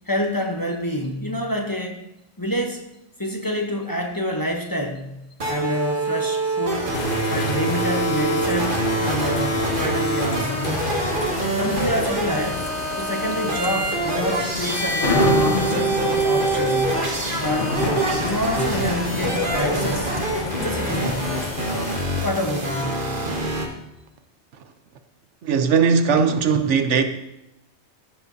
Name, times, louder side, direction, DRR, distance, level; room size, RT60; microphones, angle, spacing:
voice 1, 0.1-2.1 2.4-2.9 3.2-6.9 7.3-8.8 9.0-10.8 11.6-12.6 12.9-17.1 17.4-17.7 18.0-20.1 20.6-21.5 22.2-23.1, equal, 20° left, 0.9 m, -27 dB
sound 1, 5.4-23.7, right 2 dB, 50° right, 1.4 m, -25 dB
sound 2, 6.9-22.0, left 7 dB, 55° left, 0.5 m, -32 dB
Thunder, 14.6-21.8, left 3 dB, 85° left, 1.6 m, -28 dB
voice 2, 25.4-27.0, right 6 dB, 85° right, 1.1 m, -18 dB
15.0 x 7.4 x 2.7 m
omnidirectional pair, 1.2 m